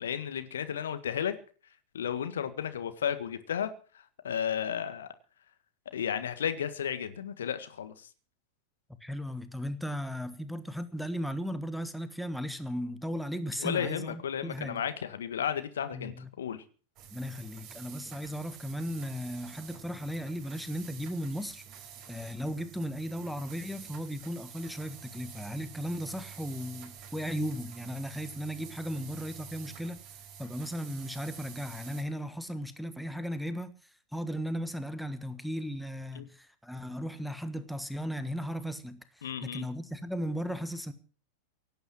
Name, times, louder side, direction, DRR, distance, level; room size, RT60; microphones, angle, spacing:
voice 1, 0.0-1.3 1.9-3.7 4.2-5.1 5.9-8.1 13.6-16.6 36.1-36.3 39.2-39.7, left 8 dB, 65° left, 1.6 m, -33 dB
voice 2, 9.0-14.8 15.9-16.3 17.1-21.6 22.1-30.0 30.4-33.7 34.1-40.9, equal, ahead, 1.4 m, -36 dB
sound 1, 17.0-32.0, right 8 dB, 35° right, 4.9 m, -49 dB
17.5 x 9.4 x 7.6 m
figure-of-eight pair, 90°, 0 cm